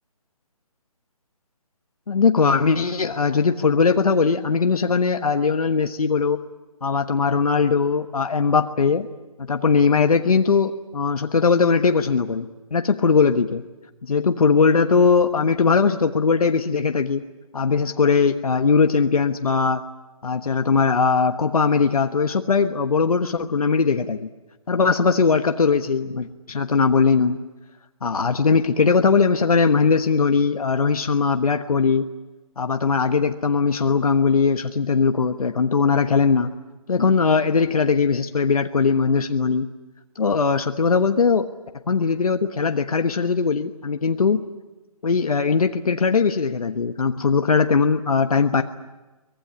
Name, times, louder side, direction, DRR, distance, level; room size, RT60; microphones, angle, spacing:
voice 1, 2.1-6.4 6.8-9.1 9.4-13.6 14.0-17.2 17.5-19.8 20.2-24.3 24.7-27.4 28.0-32.1 32.6-36.5 36.9-39.7 40.2-41.5 41.9-44.4 45.0-48.6, left 5 dB, 75° left, 7 dB, 1.3 m, -20 dB
24.0 x 19.5 x 9.7 m, 1.1 s
hypercardioid pair, 160°, 19 cm